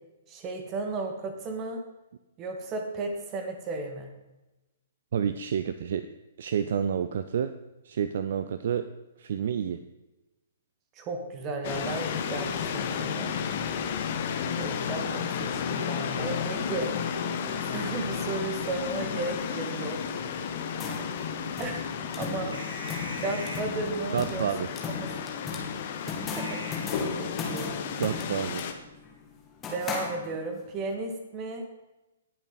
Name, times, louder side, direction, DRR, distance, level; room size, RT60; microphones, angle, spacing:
voice 1, 0.3-1.8 2.4-4.1 11.0-13.3 14.6-20.0 21.6-21.8 22.2-22.6 23.2-24.5 25.0-25.1 26.1-26.6 27.2-28.0 29.7-31.7, right 3 dB, 25° right, 5 dB, 1.8 m, -34 dB
voice 2, 5.1-6.1 6.4-7.5 7.8-8.9 9.2-9.8 24.1-24.8 28.0-28.6, right 8 dB, 50° right, 12 dB, 0.5 m, -29 dB
sound 1, 11.6-28.7, left 7 dB, 40° left, 1.1 m, -33 dB
sound 2, 20.8-30.7, left 5 dB, 15° left, 1.7 m, -38 dB
sound 3, 22.5-27.2, equal, 75° right, 3.0 m, -44 dB
18.0 x 6.9 x 4.1 m, 1.0 s
figure-of-eight pair, 120°, 0 cm